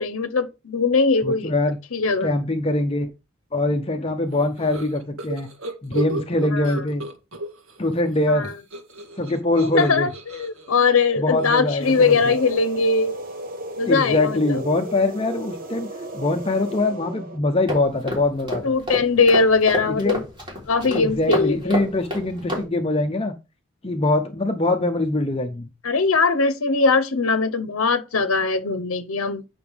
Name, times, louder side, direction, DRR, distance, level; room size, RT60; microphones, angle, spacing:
voice 1, 0.0-1.5 1.9-2.3 6.5-6.8 8.3-8.5 9.6-13.1 13.8-14.6 18.6-20.2 20.7-21.9 25.8-29.4, left 4 dB, 80° left, 0.8 m, -21 dB
voice 2, 1.2-1.8 2.2-3.1 3.5-5.5 5.8-7.0 7.8-8.5 9.2-10.1 11.2-12.3 13.9-15.9 16.1-18.7 19.9-20.2 20.9-23.3 23.8-25.7, left 2 dB, 25° left, 0.7 m, -23 dB
sound 1, 4.3-7.8 8.1-12.6, right 1 dB, 80° right, 1.9 m, -35 dB
sound 2, 11.8-17.4, right 1 dB, 40° right, 1.0 m, -35 dB
sound 3, 17.7-22.6, equal, 25° right, 3.6 m, -30 dB
8.9 x 5.9 x 3.4 m
head